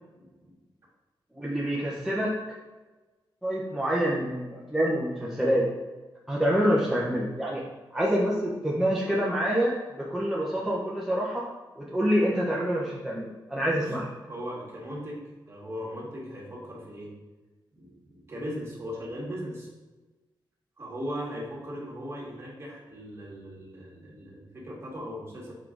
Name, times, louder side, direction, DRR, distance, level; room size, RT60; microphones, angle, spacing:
voice 1, 0.1-0.5 6.6-6.9 13.7-14.0 14.3-17.1 17.7-19.7 20.8-25.5, equal, 30° right, -4 dB, 1.9 m, -38 dB
voice 2, 1.3-2.3 3.4-5.7 6.3-7.6 7.9-11.5 11.8-14.1, equal, 5° right, -6 dB, 0.9 m, -26 dB
5.7 x 4.7 x 3.9 m, 1.2 s
wide cardioid pair, 105°, 9 cm